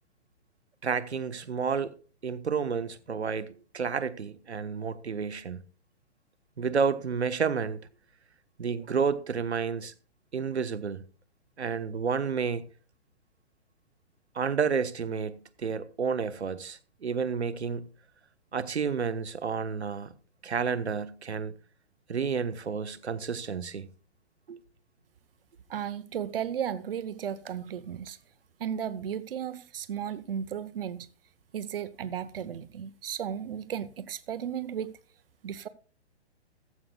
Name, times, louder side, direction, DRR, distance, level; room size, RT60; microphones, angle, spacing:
voice 1, 0.8-1.9 2.2-5.6 6.6-7.8 8.6-9.9 10.3-11.0 11.6-12.7 14.3-17.9 18.5-20.1 20.4-21.5 22.1-23.9 24.5-24.6, right 6 dB, 70° right, 1.2 m, -30 dB
voice 2, 25.7-28.2 28.6-31.1 31.5-34.9 35.4-35.7, right 9 dB, 55° right, 0.9 m, -34 dB
15.0 x 14.5 x 2.3 m
figure-of-eight pair, 125°, 34 cm